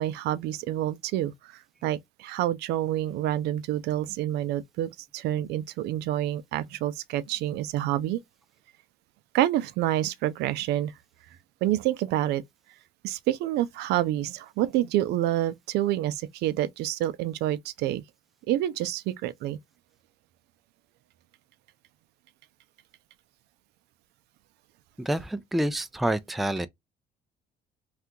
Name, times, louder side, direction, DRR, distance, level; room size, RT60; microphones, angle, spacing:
voice 1, 0.0-8.2 9.3-10.9 11.6-12.4 13.0-18.0 18.5-19.6, right 13 dB, 80° right, 0.4 m, -28 dB
voice 2, 25.0-26.7, right 1 dB, ahead, 0.3 m, -28 dB
2.7 x 2.4 x 3.6 m
cardioid pair, 110°, 17 cm